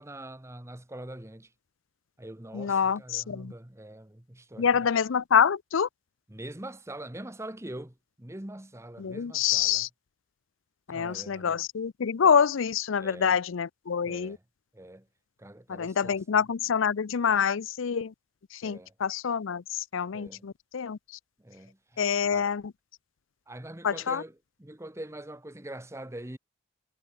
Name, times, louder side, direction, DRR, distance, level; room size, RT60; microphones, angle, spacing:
voice 1, 0.0-1.5 2.2-4.9 6.3-9.9 10.9-11.6 13.0-13.5 14.0-14.4 14.7-15.1 15.4-16.2 18.6-18.9 20.1-20.5 21.4-22.5 23.5-26.4, right 1 dB, 15° right, 1.1 m, -43 dB
voice 2, 2.5-3.5 4.6-5.9 9.0-9.9 10.9-14.4 15.7-18.1 18.6-19.6 19.9-21.0 22.0-22.6 23.8-24.2, left 7 dB, 70° left, 0.5 m, -26 dB
head